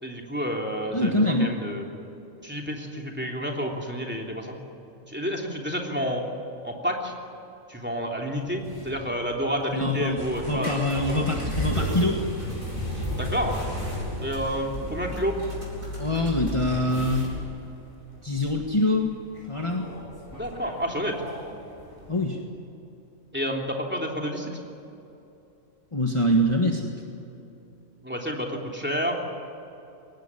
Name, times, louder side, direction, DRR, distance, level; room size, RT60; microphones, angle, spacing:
voice 1, 0.0-1.9 2.4-4.6 5.1-6.2 6.6-7.1 7.7-10.8 11.1-11.3 13.2-13.6 14.2-15.4 20.3-21.1 23.3-24.6 28.0-29.1, equal, 10° right, 0 dB, 3.2 m, -29 dB
voice 2, 0.9-1.5 9.7-12.2 16.0-17.3 18.2-19.1 19.5-19.8 22.1-22.4 25.9-26.9, left 1 dB, 20° left, 1 dB, 1.6 m, -24 dB
sound 1, 8.4-22.2, left 1 dB, 40° left, 7.6 m, -36 dB
sound 2, 10.2-10.5 10.9-15.2 15.5-17.4, right 1 dB, 80° right, 8.6 m, -36 dB
23.0 x 19.0 x 10.0 m, 2.8 s
omnidirectional pair, 1.4 m